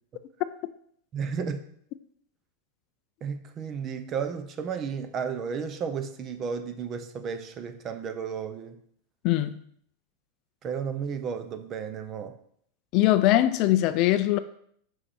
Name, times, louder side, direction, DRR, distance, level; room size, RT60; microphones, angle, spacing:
voice 1, 1.1-1.6 3.2-8.8 10.6-12.4, right 6 dB, 25° right, 0.5 m, -33 dB
voice 2, 9.2-9.6 12.9-14.4, left 14 dB, 40° left, 0.3 m, -21 dB
5.6 x 5.4 x 4.2 m
supercardioid pair, 165°, 0 cm